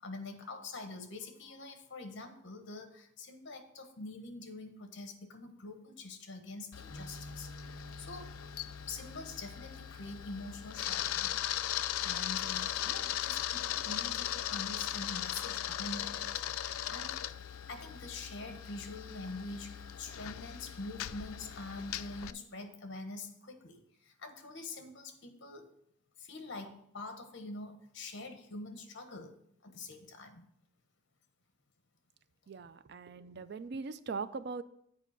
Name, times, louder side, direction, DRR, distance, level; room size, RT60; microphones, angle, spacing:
voice 1, 0.0-7.5 8.0-8.4 8.9-11.4 12.0-17.2 17.7-25.7 26.2-29.3 29.6-30.5, left 2 dB, 60° left, 6 dB, 1.3 m, -45 dB
Camera, 6.7-22.3, left 12 dB, 85° left, 0.4 m, -38 dB
sound 1, 6.9-10.9, right 1 dB, 25° left, 2.0 m, -52 dB
voice 2, 32.5-34.6, right 4 dB, 50° right, 14 dB, 0.4 m, -40 dB
8.2 x 4.9 x 5.8 m, 0.70 s
head